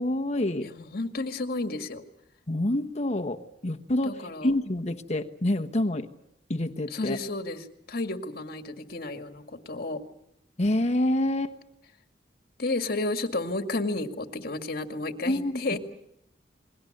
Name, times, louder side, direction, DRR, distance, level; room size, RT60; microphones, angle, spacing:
voice 1, 0.0-0.7 2.5-6.1 6.5-7.2 10.6-11.5 15.2-15.6, left 1 dB, 40° left, 5 dB, 1.2 m, -27 dB
voice 2, 0.6-2.0 4.0-4.5 6.9-10.0 12.6-15.8, left 2 dB, 60° left, 6 dB, 2.0 m, -32 dB
29.0 x 22.0 x 6.6 m, 0.78 s
head